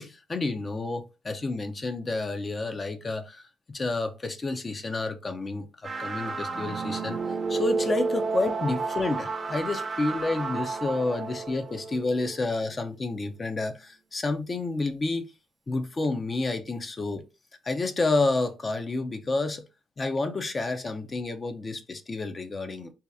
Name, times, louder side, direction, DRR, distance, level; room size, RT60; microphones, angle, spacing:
voice 1, 0.0-3.4 3.7-7.2 7.5-15.3 15.7-17.2 17.6-19.6 20.0-22.9, left 3 dB, 30° left, 0.5 m, -30 dB
sound 1, 5.8-12.7, right 4 dB, 35° right, 0.5 m, -31 dB
2.7 x 2.3 x 3.4 m
cardioid pair, 90°, 0 cm